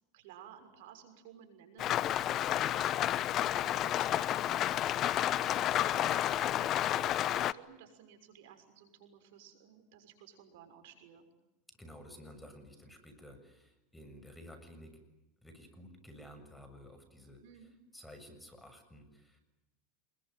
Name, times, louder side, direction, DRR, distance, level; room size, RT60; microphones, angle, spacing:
voice 1, 0.1-2.0 2.6-3.2 3.5-11.3 17.4-17.7, right 8 dB, 75° right, 7 dB, 6.3 m, -55 dB
Rain, 1.8-7.5, left 12 dB, 45° left, 1.0 m, -31 dB
voice 2, 11.8-15.0 15.4-17.4 17.9-19.4, equal, 5° left, 8 dB, 7.2 m, -53 dB
27.5 x 22.5 x 9.4 m, 0.96 s
supercardioid pair, 110°, 0 cm